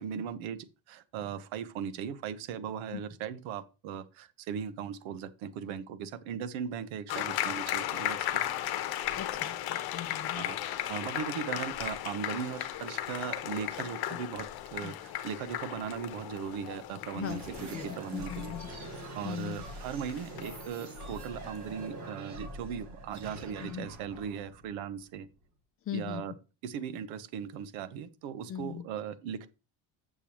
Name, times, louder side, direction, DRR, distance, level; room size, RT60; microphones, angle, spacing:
voice 1, 0.0-8.4 10.3-18.5 19.1-25.3 25.9-26.3 26.6-29.5, right 8 dB, 75° right, 1.1 m, -38 dB
sound 1, 7.1-22.0, left 12 dB, 50° left, 1.0 m, -36 dB
voice 2, 9.2-10.5 14.1-14.2 14.8-14.9 17.2-18.7 19.2-19.6 23.6-23.9 25.9-26.2 28.5-28.8, left 10 dB, 30° left, 0.5 m, -39 dB
sound 2, 17.2-25.4, right 2 dB, 35° right, 1.8 m, -44 dB
8.4 x 6.9 x 3.0 m
cardioid pair, 140°, 47 cm